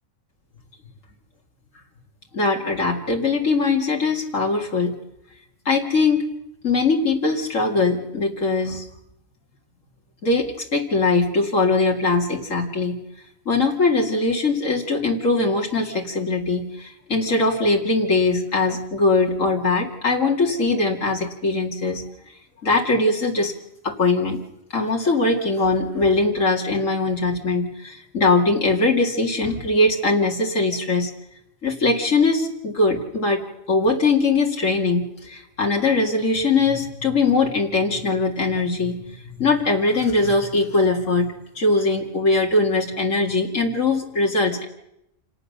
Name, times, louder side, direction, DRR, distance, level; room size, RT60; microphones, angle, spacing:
voice 1, 2.3-5.0 5.7-6.2 6.6-8.9 10.2-12.9 13.5-22.0 22.6-23.5 23.8-24.4 24.7-31.1 31.6-44.6, left 3 dB, 80° left, 0 dB, 2.6 m, -21 dB
28.0 x 18.0 x 6.7 m, 0.82 s
omnidirectional pair, 1.3 m